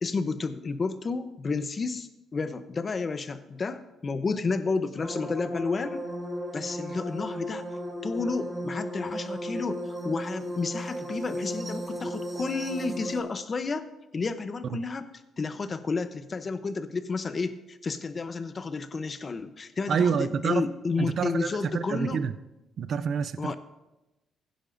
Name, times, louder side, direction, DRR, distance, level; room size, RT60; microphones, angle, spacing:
voice 1, 0.0-6.0 6.5-7.6 8.0-13.9 14.1-15.1 15.4-22.2 23.4-23.6, left 4 dB, 40° left, 11 dB, 0.8 m, -31 dB
sound 1, 5.0-13.2, equal, 20° right, 4.5 m, -35 dB
voice 2, 19.9-20.7 21.0-22.3 22.8-23.6, right 6 dB, 60° right, 12 dB, 0.5 m, -28 dB
15.5 x 10.5 x 2.6 m, 0.98 s
cardioid pair, 90°, 0 cm